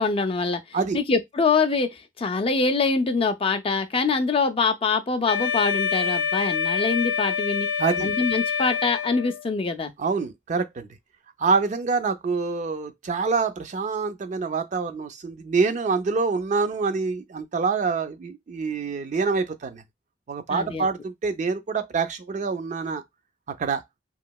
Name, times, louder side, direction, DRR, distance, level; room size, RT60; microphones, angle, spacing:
voice 1, 0.0-0.6 0.9-7.7 8.0-9.9 20.5-20.9, left 4 dB, 30° left, 0.4 m, -24 dB
Wind instrument woodwind instrument, 5.3-9.5, left 6 dB, 85° left, 0.6 m, -26 dB
voice 2, 7.8-8.1 10.0-10.9 11.4-19.8 20.3-23.0 23.6-23.8, right 4 dB, 40° right, 0.4 m, -26 dB
3.0 x 2.7 x 2.2 m
head